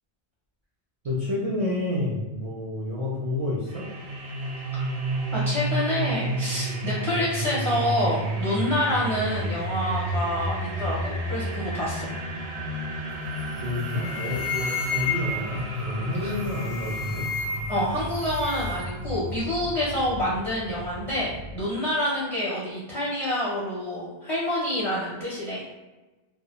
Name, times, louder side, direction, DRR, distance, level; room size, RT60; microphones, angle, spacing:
voice 1, 1.0-3.9 13.6-17.3, left 2 dB, 50° right, -7 dB, 0.4 m, -29 dB
sound 1, 3.7-21.6, right 1 dB, 90° right, 0.9 m, -31 dB
voice 2, 5.3-12.1 16.2-16.4 17.7-25.6, left 1 dB, 45° left, -8 dB, 0.5 m, -27 dB
sound 2, 13.4-13.6 13.9-15.5 16.4-17.8 18.1-18.9, left 6 dB, 20° right, 0.8 m, -32 dB
2.3 x 2.0 x 2.8 m, 1.1 s
omnidirectional pair, 1.0 m